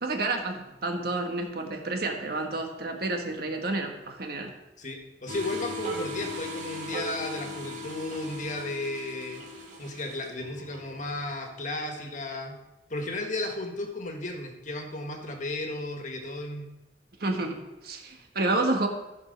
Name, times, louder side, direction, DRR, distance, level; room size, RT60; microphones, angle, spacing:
voice 1, 0.0-4.5 17.2-18.9, right 2 dB, 60° right, 3 dB, 1.5 m, -30 dB
voice 2, 4.8-9.4 9.8-12.6 12.9-16.7, left 2 dB, 45° left, 3 dB, 1.6 m, -34 dB
Das Ist der Organsound, 5.3-12.2, equal, 45° right, 2.1 m, -39 dB
14.5 x 5.4 x 5.3 m, 0.98 s
head